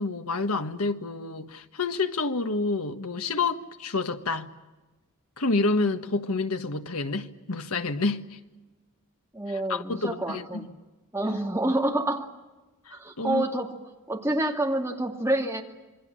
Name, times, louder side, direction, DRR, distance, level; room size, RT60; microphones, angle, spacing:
voice 1, 0.0-4.5 5.4-8.4 9.7-10.7 12.9-13.4, left 3 dB, 75° left, 1.5 m, -28 dB
voice 2, 9.3-10.7 11.1-12.3 12.9-13.7 14.1-15.6, right 1 dB, 10° right, 2.2 m, -27 dB
27.0 x 23.0 x 7.6 m
head